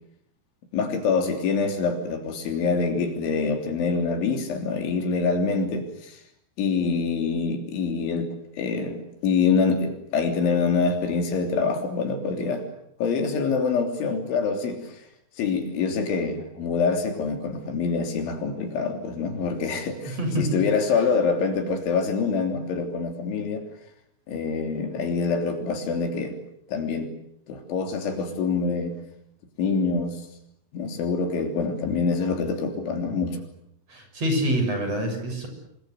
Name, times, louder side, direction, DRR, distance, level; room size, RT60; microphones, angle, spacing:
voice 1, 0.7-6.2 6.6-12.7 13.0-15.0 15.4-23.6 24.3-26.4 26.7-27.1 27.5-29.0 29.6-30.2 30.7-33.4, left 4 dB, 75° left, 5 dB, 5.6 m, -25 dB
voice 2, 20.2-20.6 20.9-21.0 33.9-35.5, equal, 30° right, 5 dB, 7.9 m, -26 dB
28.0 x 24.5 x 8.1 m, 0.74 s
omnidirectional pair, 5.4 m